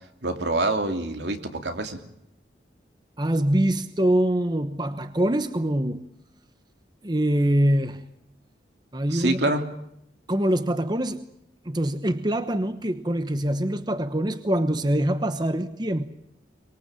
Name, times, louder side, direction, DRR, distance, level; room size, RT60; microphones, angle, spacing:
voice 1, 0.2-2.0 9.1-9.6, right 2 dB, 75° right, 6 dB, 2.9 m, -26 dB
voice 2, 3.2-6.0 7.0-8.0 8.9-9.4 10.3-11.2 11.6-16.1, right 1 dB, 25° right, 10 dB, 1.1 m, -24 dB
24.5 x 22.5 x 7.6 m, 0.78 s
head